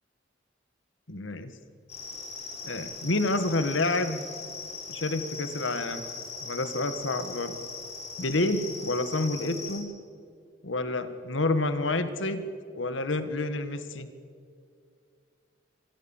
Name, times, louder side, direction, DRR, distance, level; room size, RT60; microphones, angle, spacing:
voice 1, 1.1-1.5 2.6-4.2 4.9-6.0 6.4-7.5 8.2-9.9 10.6-12.4 12.7-14.1, left 2 dB, 90° left, 10 dB, 1.7 m, -29 dB
sound 1, 1.9-9.8, left 4 dB, 35° left, 5.0 m, -40 dB
25.5 x 19.0 x 7.3 m, 2.2 s
head